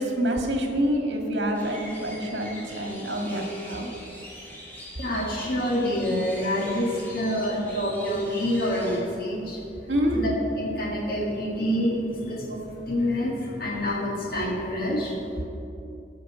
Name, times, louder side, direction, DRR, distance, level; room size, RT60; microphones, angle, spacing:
voice 1, 0.0-3.9 9.9-10.2, equal, 80° right, 1 dB, 1.8 m, -27 dB
sound 1, 1.5-9.0, equal, 10° left, 2.4 m, -43 dB
voice 2, 5.0-9.6 10.1-10.3 10.6-15.4, equal, 55° left, -3 dB, 1.8 m, -27 dB
13.5 x 5.8 x 7.4 m, 2.8 s
head